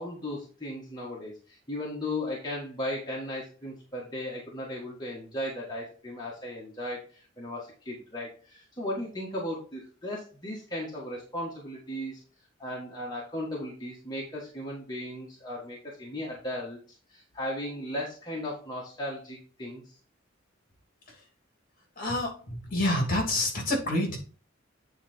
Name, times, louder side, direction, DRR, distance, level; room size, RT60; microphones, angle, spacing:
voice 1, 0.0-12.2 12.6-16.8 17.1-20.0, left 1 dB, 20° left, -4 dB, 1.6 m, -36 dB
voice 2, 22.0-22.3 22.7-24.2, left 1 dB, 45° left, 2 dB, 2.8 m, -27 dB
8.6 x 4.1 x 4.3 m, 0.38 s
head